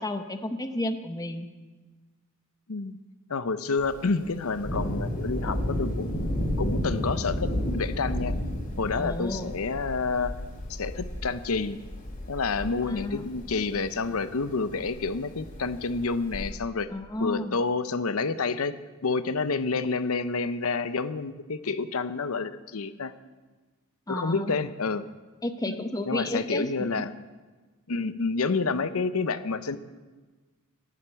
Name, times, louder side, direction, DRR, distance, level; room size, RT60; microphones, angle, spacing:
voice 1, 0.0-1.5 9.0-9.5 12.8-13.3 16.9-17.6 24.1-24.6 25.4-27.0, left 1 dB, 15° left, 8 dB, 0.8 m, -32 dB
voice 2, 3.3-6.3 6.6-8.3 8.8-10.4 10.7-11.8 12.3-16.9 17.2-18.8 19.0-23.1 24.1-25.0 25.7-27.1 27.9-29.8, left 4 dB, 70° left, 13 dB, 0.7 m, -29 dB
Thunder, 3.8-16.5, equal, 40° left, 2.9 m, -33 dB
11.0 x 11.0 x 8.1 m, 1.3 s
head